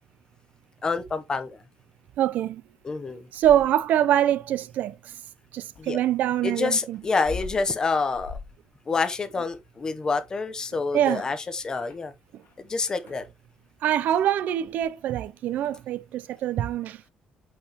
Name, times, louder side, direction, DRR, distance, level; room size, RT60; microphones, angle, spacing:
voice 1, 0.8-1.6 2.8-3.3 5.8-6.0 6.4-8.4 8.9-12.1 12.7-13.3, left 4 dB, 25° left, 0.8 m, -27 dB
voice 2, 2.2-2.6 3.3-4.9 5.5-7.0 10.9-11.2 13.8-17.0, right 11 dB, 70° right, 0.5 m, -24 dB
sound 1, 3.1-4.0 5.7-12.6 12.9-13.3 14.6-14.9, left 4 dB, 60° left, 2.8 m, -43 dB
8.4 x 4.6 x 2.9 m
cardioid pair, 145°, 3 cm